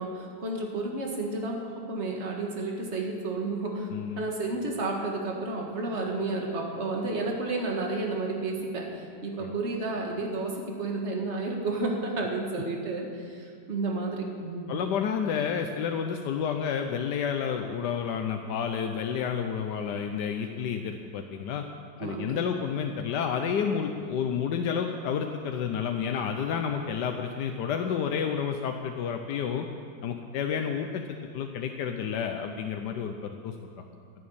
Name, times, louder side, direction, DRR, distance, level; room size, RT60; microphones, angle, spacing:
voice 1, 0.0-3.9 4.2-14.8 22.0-22.4, right 2 dB, 35° right, 0 dB, 2.1 m, -31 dB
voice 2, 3.9-4.3 9.4-9.5 14.7-21.6 22.0-29.7 30.0-31.0 31.3-33.5, left 7 dB, 70° left, 4 dB, 1.3 m, -30 dB
11.5 x 11.0 x 8.7 m, 2.2 s
omnidirectional pair, 2.0 m